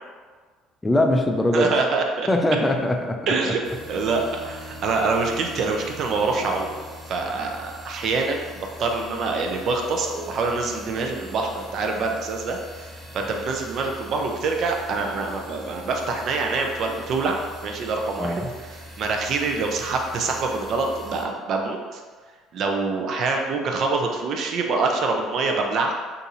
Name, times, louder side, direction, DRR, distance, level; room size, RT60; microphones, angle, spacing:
voice 1, 0.8-1.7 2.3-3.3 18.2-18.5, left 1 dB, 10° left, 3 dB, 0.4 m, -21 dB
voice 2, 1.5-2.3 3.3-3.6 3.9-6.7 7.1-17.4 17.6-18.3 19.0-22.0 22.5-25.9, right 3 dB, 55° right, 2 dB, 0.5 m, -25 dB
Bowed string instrument, 3.6-7.6, right 1 dB, 80° left, 0.6 m, -44 dB
sound 1, 3.6-21.2, equal, 20° right, 0.9 m, -43 dB
2.7 x 2.6 x 4.0 m, 1.5 s
cardioid pair, 105°, 0 cm